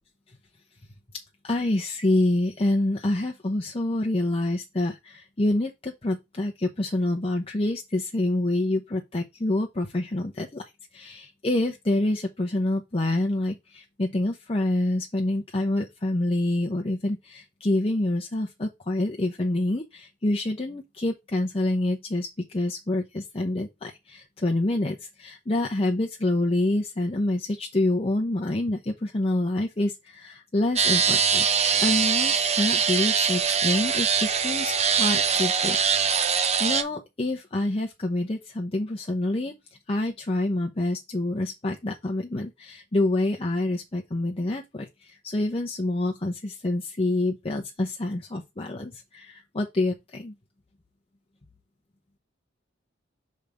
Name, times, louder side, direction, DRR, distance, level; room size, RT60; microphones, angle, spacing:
voice 1, 1.4-36.2 36.6-39.5 39.9-50.3, left 1 dB, 30° left, 0.8 m, -27 dB
sound 1, 30.8-36.8, right 6 dB, 35° right, 0.7 m, -23 dB
6.4 x 3.5 x 5.2 m
head